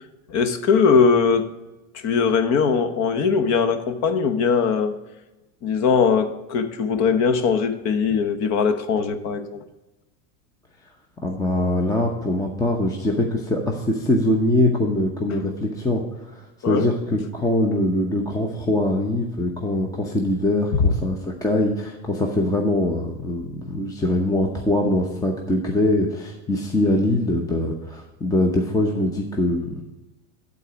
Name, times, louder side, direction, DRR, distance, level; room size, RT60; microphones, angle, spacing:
voice 1, 0.3-1.5 1.9-4.9 5.6-9.6 16.6-16.9 20.8-20.9, left 5 dB, 45° left, 9 dB, 1.0 m, -20 dB
voice 2, 11.2-29.8, left 1 dB, 10° left, 1 dB, 0.8 m, -23 dB
11.5 x 4.1 x 6.2 m, 1.1 s
supercardioid pair, 130°, 39 cm